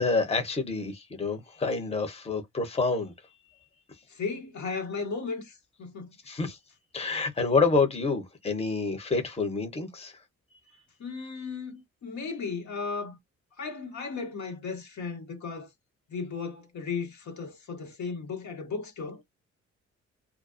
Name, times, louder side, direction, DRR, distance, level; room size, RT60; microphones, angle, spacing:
voice 1, 0.0-3.1 6.3-6.6 6.9-10.1, left 4 dB, 20° left, 0.8 m, -27 dB
voice 2, 4.1-6.4 11.0-13.2 13.6-15.7 16.1-19.2, left 4 dB, 75° left, 1.2 m, -35 dB
2.4 x 2.2 x 2.4 m
cardioid pair, 75°, 29 cm